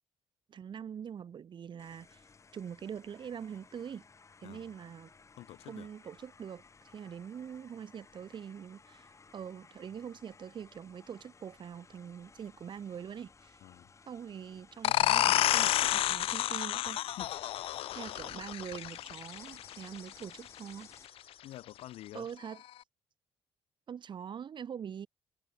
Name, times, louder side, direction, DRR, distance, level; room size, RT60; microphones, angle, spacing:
voice 1, 0.5-4.1 4.4-5.1 5.7-13.6 14.1-17.0 17.9-21.5 22.1-22.6 23.9-25.1, right 8 dB, 50° right, 1.9 m, -44 dB
sound 1, 1.8-21.1, left 4 dB, 30° left, 2.2 m, -59 dB
voice 2, 4.4-4.7 5.4-5.9 13.6-13.9 17.1-17.8 21.4-22.3, left 15 dB, 80° left, 1.1 m, -49 dB
sound 2, 14.8-20.2, left 13 dB, 65° left, 0.3 m, -30 dB
cardioid pair, 95°, 10 cm